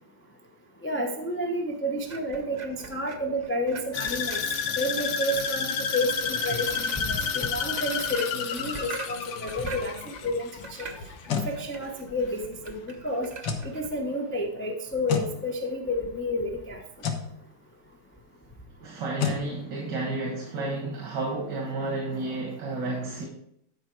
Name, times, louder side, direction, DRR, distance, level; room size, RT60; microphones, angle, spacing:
voice 1, 0.8-4.4 4.8-9.9 10.2-10.5 10.8-10.9 11.3-13.3 13.7-16.8, left 1 dB, 20° left, 1 dB, 0.3 m, -30 dB
sound 1, 2.0-14.0, right 4 dB, 45° right, 0.5 m, -43 dB
sound 2, 3.9-12.2 12.5-12.9 13.3-13.4, left 6 dB, 60° left, 0.7 m, -31 dB
sound 3, 11.0-11.5 13.4-13.7 15.1-15.3 17.0-17.3 19.2-19.4, left 7 dB, 85° left, 1.7 m, -28 dB
voice 2, 18.8-23.3, right 2 dB, 90° right, -1 dB, 2.1 m, -31 dB
10.5 x 4.8 x 4.6 m, 0.74 s
omnidirectional pair, 1.9 m